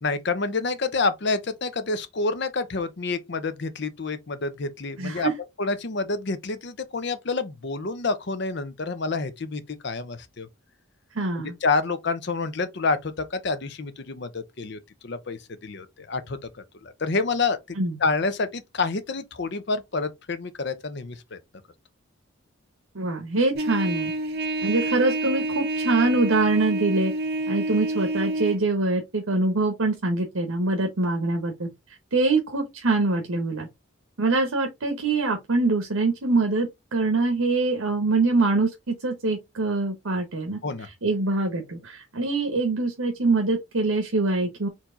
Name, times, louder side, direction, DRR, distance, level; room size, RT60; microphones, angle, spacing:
voice 1, 0.0-5.3 5.6-10.5 11.3-16.4 16.8-21.4 40.6-40.9, left 3 dB, 55° left, 0.6 m, -28 dB
voice 2, 5.0-5.3 11.1-11.6 17.8-18.0 22.9-24.1 24.6-27.1 27.5-31.7 32.1-33.7 34.2-40.6 41.0-44.7, right 3 dB, 80° right, 1.0 m, -24 dB
Trumpet, 23.5-28.6, right 2 dB, 50° right, 1.0 m, -28 dB
4.6 x 2.8 x 3.8 m
head